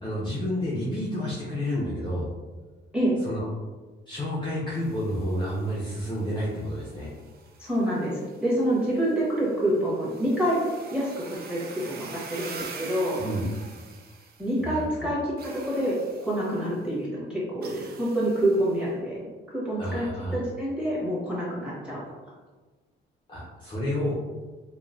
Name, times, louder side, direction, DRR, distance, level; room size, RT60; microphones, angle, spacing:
voice 1, 0.0-2.3 3.2-3.5 4.1-7.1 13.2-13.5 14.6-15.1 19.8-20.3 23.3-24.1, equal, 25° left, -7 dB, 0.6 m, -30 dB
sound 1, 4.7-14.8 15.4-16.8 17.6-18.8, right 4 dB, 50° right, 0.4 m, -46 dB
voice 2, 7.6-13.2 14.4-19.2 19.5-20.1 20.3-22.0, right 1 dB, 5° right, -7 dB, 1.4 m, -27 dB
2.9 x 2.2 x 2.5 m, 1.3 s
cardioid pair, 90°, 20 cm